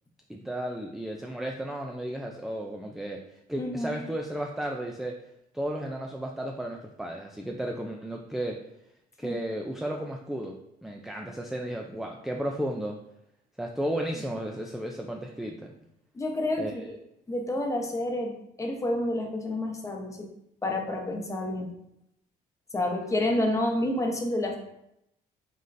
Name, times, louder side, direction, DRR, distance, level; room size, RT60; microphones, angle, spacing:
voice 1, 0.3-3.2 3.5-5.2 5.5-8.6 9.2-10.5 10.8-13.0 13.6-15.7 16.6-16.7, right 1 dB, ahead, 1 dB, 0.4 m, -33 dB
voice 2, 3.6-4.0 9.2-9.4 16.1-17.0 17.3-18.3 18.6-20.3 20.6-21.7 22.7-24.6, left 1 dB, 20° left, 2 dB, 0.9 m, -29 dB
5.3 x 3.7 x 2.6 m, 0.81 s
cardioid pair, 110°, 17 cm